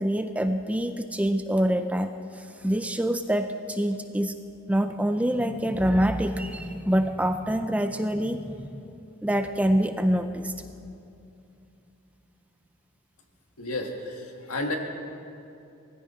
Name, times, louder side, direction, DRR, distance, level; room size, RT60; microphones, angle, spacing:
voice 1, 0.0-4.4 4.7-8.8 9.2-10.5, equal, 5° right, 8 dB, 0.4 m, -26 dB
voice 2, 13.6-14.8, left 2 dB, 85° left, 3 dB, 1.7 m, -32 dB
20.0 x 14.5 x 4.3 m, 2.7 s
head